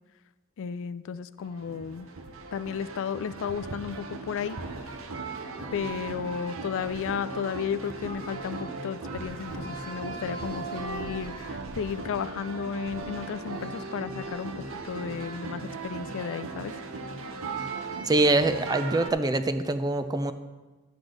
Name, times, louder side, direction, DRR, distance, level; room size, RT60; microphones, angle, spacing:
voice 1, 0.6-2.1 2.5-4.6 5.7-16.7, left 7 dB, 60° left, 14 dB, 0.3 m, -33 dB
sound 1, 1.4-19.1, right 3 dB, 65° right, 0.9 m, -38 dB
Sliding door, 9.2-12.2, right 1 dB, 80° right, 3.0 m, -45 dB
voice 2, 18.1-20.3, right 2 dB, 15° right, 9 dB, 0.4 m, -24 dB
12.0 x 8.0 x 3.9 m, 1.2 s
head